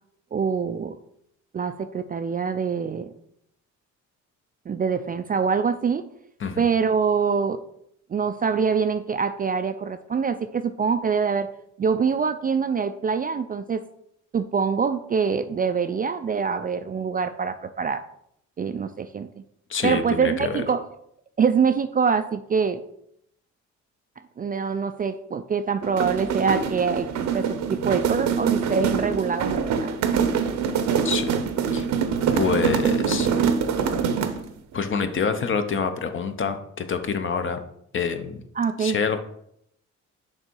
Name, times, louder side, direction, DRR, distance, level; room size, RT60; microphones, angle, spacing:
voice 1, 0.3-1.0 1.5-3.1 4.7-6.1 6.6-7.6 8.1-11.5 11.8-13.8 14.3-18.0 18.6-19.3 19.8-20.8 21.4-22.8 24.4-27.1 27.3-29.9 38.6-39.0, right 6 dB, 30° right, 9 dB, 0.3 m, -24 dB
voice 2, 19.7-20.6 31.0-31.3 31.7-31.9 32.3-33.3 34.7-37.6 37.9-38.4 38.8-39.2, left 6 dB, 40° left, 8 dB, 0.7 m, -26 dB
sound 1, 25.8-34.5, right 6 dB, 65° right, 0.7 m, -24 dB
6.6 x 3.6 x 4.5 m, 0.73 s
cardioid pair, 90°, 30 cm